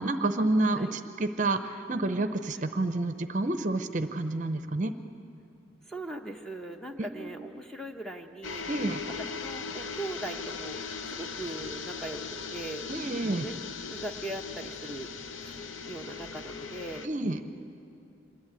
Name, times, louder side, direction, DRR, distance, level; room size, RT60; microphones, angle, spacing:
voice 1, 0.0-4.9 7.0-7.3 8.7-9.0 12.9-13.5 17.0-17.4, right 2 dB, 40° right, 9 dB, 0.7 m, -29 dB
voice 2, 5.9-8.6 9.1-12.2 12.5-12.9 13.3-15.1 15.4-15.6 15.9-17.1, right 1 dB, 5° left, 3 dB, 0.8 m, -40 dB
sound 1, 8.4-17.1, left 5 dB, 85° left, 0.7 m, -39 dB
26.0 x 11.0 x 8.9 m, 2.6 s
head